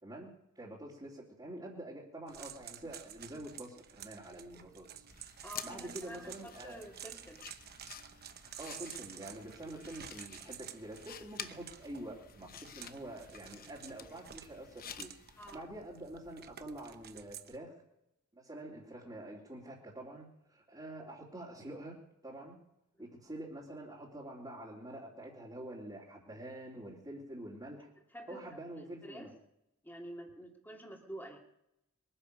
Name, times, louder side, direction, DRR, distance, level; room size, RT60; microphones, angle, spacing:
voice 1, 0.0-4.9 5.6-6.8 8.6-15.1 15.5-17.7 18.3-22.0 22.2-22.6 23.0-27.9 28.3-29.3, right 1 dB, 20° right, -6 dB, 3.1 m, -46 dB
sound 1, 2.3-17.6, right 9 dB, 45° right, 1.0 m, -51 dB
sound 2, 5.1-15.6, left 8 dB, 40° left, 0.9 m, -51 dB
voice 2, 5.4-7.4 15.4-15.6 23.0-23.1 28.1-29.3 29.8-31.4, right 1 dB, 10° left, 1 dB, 2.8 m, -49 dB
22.5 x 9.9 x 6.5 m, 0.82 s
head